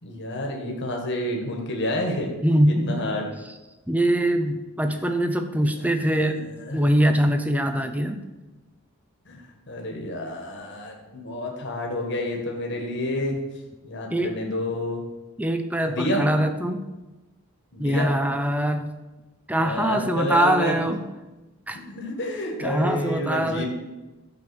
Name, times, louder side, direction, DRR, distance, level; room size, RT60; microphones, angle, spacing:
voice 1, 0.0-2.3 2.7-3.2 6.6-6.8 9.2-9.4 9.7-13.4 13.8-15.0 15.9-16.3 17.7-18.1 19.6-20.8 21.7-23.7, left 1 dB, 55° left, 1 dB, 1.7 m, -29 dB
voice 2, 2.4-3.1 3.9-8.2 14.1-14.4 15.4-16.8 17.8-19.0 19.5-21.0 21.7-21.8 22.6-23.6, right 1 dB, 5° right, 7 dB, 0.7 m, -23 dB
11.5 x 5.2 x 7.0 m, 1.1 s
head